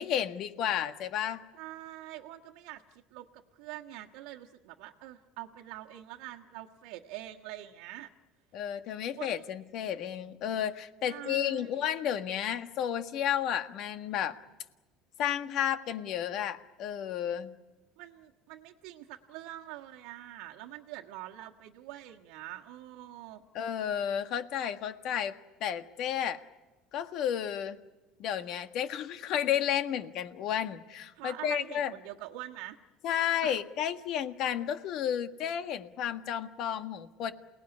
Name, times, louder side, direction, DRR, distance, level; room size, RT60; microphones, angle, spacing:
voice 1, 0.0-1.4 8.5-14.4 15.2-17.5 23.5-25.3 25.6-26.4 26.9-27.8 28.2-31.9 33.0-37.3, left 9 dB, 60° left, 8 dB, 1.6 m, -32 dB
voice 2, 1.5-8.1 9.1-9.4 11.0-11.8 18.0-23.4 31.1-32.8 33.4-33.6, right 14 dB, 85° right, -2 dB, 1.5 m, -45 dB
28.5 x 19.0 x 9.9 m, 1.1 s
supercardioid pair, 120°, 0 cm